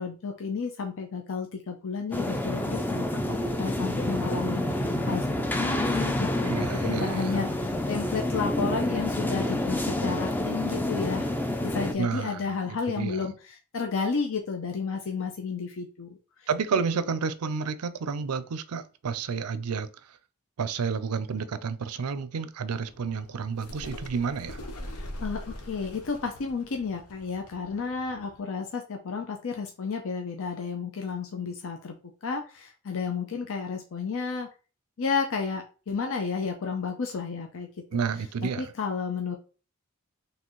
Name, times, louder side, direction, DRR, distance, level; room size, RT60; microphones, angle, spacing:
voice 1, 0.0-3.1 3.6-11.4 11.6-16.8 25.0-32.0 32.2-34.5 35.0-37.7 38.4-39.4, left 5 dB, 65° left, 0.6 m, -32 dB
sound 1, 2.1-11.9, left 1 dB, 10° left, 0.4 m, -28 dB
voice 2, 6.4-7.3 12.0-13.3 16.5-20.2 20.6-24.6 37.9-38.7, right 5 dB, 90° right, 0.5 m, -31 dB
sound 2, 22.7-28.4, left 1 dB, 90° left, 0.9 m, -42 dB
4.3 x 3.2 x 3.0 m
head